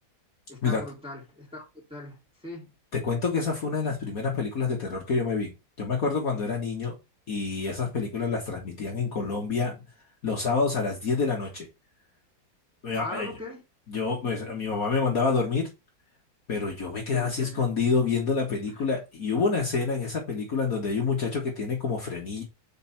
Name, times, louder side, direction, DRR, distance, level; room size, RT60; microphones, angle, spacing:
voice 1, 0.5-1.6 1.9-2.7 13.0-13.6 17.1-17.7 18.7-18.8, left 2 dB, 5° right, 3.1 m, -40 dB
voice 2, 2.9-5.5 5.8-6.9 7.3-9.7 10.2-11.7 12.8-13.3 13.9-15.7 16.5-22.4, left 4 dB, 50° left, 1.9 m, -27 dB
5.9 x 4.7 x 5.8 m
omnidirectional pair, 2.0 m